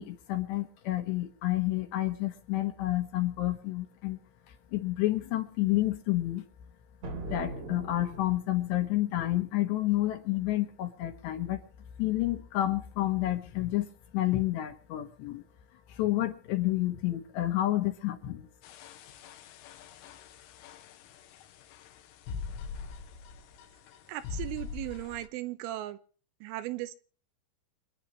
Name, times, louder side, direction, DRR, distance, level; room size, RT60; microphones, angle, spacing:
voice 1, 0.0-4.2 4.7-6.4 7.3-11.6 12.0-13.9 14.1-15.4 15.9-18.5, left 15 dB, 70° left, 7 dB, 2.9 m, -29 dB
sound 1, 7.0-8.8, right 3 dB, 45° right, 2.6 m, -40 dB
sound 2, 18.6-25.3, left 5 dB, 90° left, 4.0 m, -42 dB
voice 2, 24.1-26.0 26.4-26.9, right 15 dB, 80° right, 12 dB, 3.4 m, -37 dB
27.0 x 9.8 x 3.0 m, 0.40 s
omnidirectional pair, 5.9 m